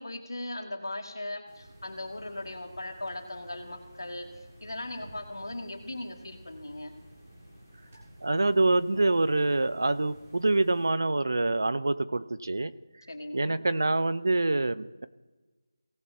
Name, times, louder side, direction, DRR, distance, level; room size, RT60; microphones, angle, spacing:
voice 1, 0.0-4.3 4.6-6.9 13.1-13.6, left 1 dB, 70° left, 2 dB, 2.2 m, -38 dB
sound 1, 1.5-10.9, right 1 dB, 20° right, 1.9 m, -53 dB
voice 2, 8.2-12.7 13.3-15.1, right 2 dB, 55° right, 15 dB, 0.5 m, -26 dB
18.0 x 6.0 x 4.2 m, 1.2 s
figure-of-eight pair, 175°, 2 cm